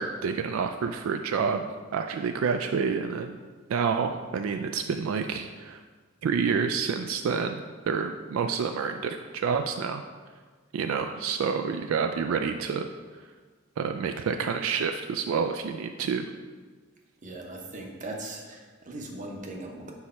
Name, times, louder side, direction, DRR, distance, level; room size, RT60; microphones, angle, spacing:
voice 1, 0.0-1.7 1.9-3.4 3.7-5.8 6.2-10.0 10.7-12.9 13.8-16.2, right 6 dB, 75° right, 7 dB, 0.3 m, -28 dB
voice 2, 17.2-19.9, right 2 dB, 40° right, 1 dB, 0.8 m, -39 dB
4.7 x 4.1 x 5.4 m, 1.5 s
head